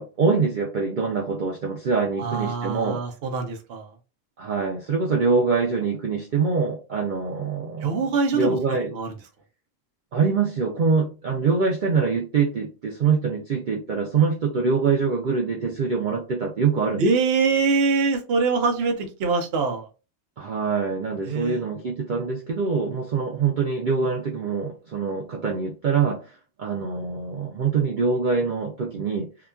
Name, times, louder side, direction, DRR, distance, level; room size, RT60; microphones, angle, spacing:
voice 1, 0.0-3.0 4.4-8.0 8.3-8.9 10.1-17.1 20.4-29.3, right 5 dB, 90° right, 0 dB, 0.4 m, -24 dB
voice 2, 2.2-3.9 7.8-8.6 8.9-9.1 17.0-19.9 21.2-21.6, right 4 dB, 60° right, 5 dB, 0.7 m, -23 dB
2.8 x 2.3 x 2.3 m, 0.32 s
omnidirectional pair, 1.5 m